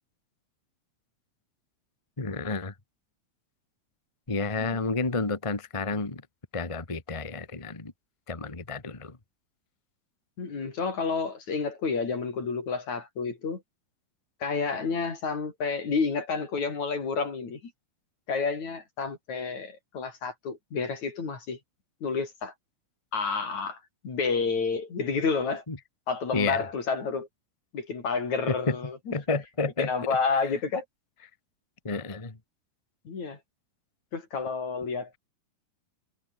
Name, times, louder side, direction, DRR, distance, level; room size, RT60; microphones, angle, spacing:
voice 1, 2.2-2.7 4.3-6.2 6.5-7.9 8.3-9.2 25.7-25.8 26.3-26.6 28.5-28.8 29.1-29.9 31.8-32.4, left 3 dB, 25° left, 0.6 m, -30 dB
voice 2, 10.4-13.6 14.4-17.7 18.3-21.6 22.0-22.5 23.1-25.6 26.1-27.3 27.7-29.1 29.8-30.8 33.1-33.4 34.1-35.2, left 5 dB, 50° left, 5.9 m, -30 dB
omnidirectional pair, 4.2 m